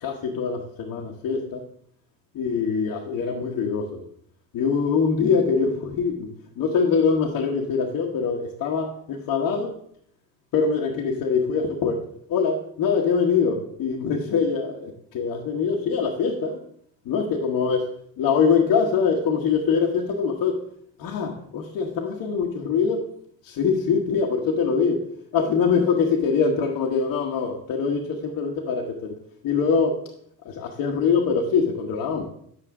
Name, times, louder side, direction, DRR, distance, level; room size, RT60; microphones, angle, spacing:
voice 1, 0.0-1.6 2.3-4.0 4.5-6.3 6.6-9.7 10.5-12.0 12.3-16.6 17.0-17.8 18.2-20.6 21.0-23.0 23.4-25.1 25.3-29.2 29.4-30.1 30.4-32.3, left 5 dB, 55° left, -1 dB, 1.3 m, -23 dB
8.9 x 7.7 x 3.7 m, 0.65 s
hypercardioid pair, 65°, 38 cm